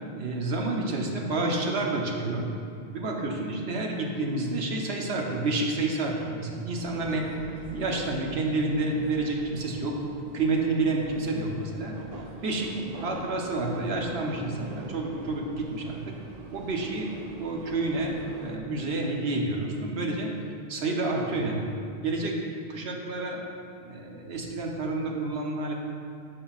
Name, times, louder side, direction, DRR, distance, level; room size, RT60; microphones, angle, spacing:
voice 1, 0.1-2.5 2.9-7.2 7.7-10.0 10.3-11.9 12.4-12.7 13.0-16.1 16.5-17.1 17.4-20.3 20.7-21.6 22.0-22.3 22.7-23.4 23.8-25.7, right 2 dB, 85° right, 0 dB, 1.1 m, -29 dB
sound 1, 6.7-18.6, right 3 dB, 50° right, 0.6 m, -43 dB
13.0 x 4.9 x 2.4 m, 2.4 s
omnidirectional pair, 1.0 m